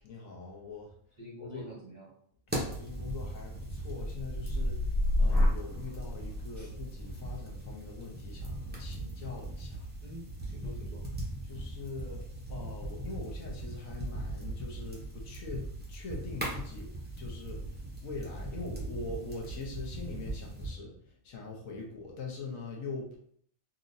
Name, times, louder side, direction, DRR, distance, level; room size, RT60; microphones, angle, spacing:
voice 1, 0.0-0.9 1.4-1.6 2.5-9.9 11.4-17.6 18.0-20.9 21.2-23.2, left 3 dB, 70° left, -1 dB, 1.2 m, -43 dB
voice 2, 1.2-2.1 6.6-6.7 10.0-11.1, equal, 40° right, -4 dB, 0.8 m, -46 dB
sound 1, 2.5-20.7, right 1 dB, 15° right, 0.4 m, -40 dB
sound 2, 3.9-11.7 12.2-12.7, left 1 dB, 90° left, 1.4 m, -33 dB
3.8 x 2.9 x 2.6 m, 0.63 s
omnidirectional pair, 1.5 m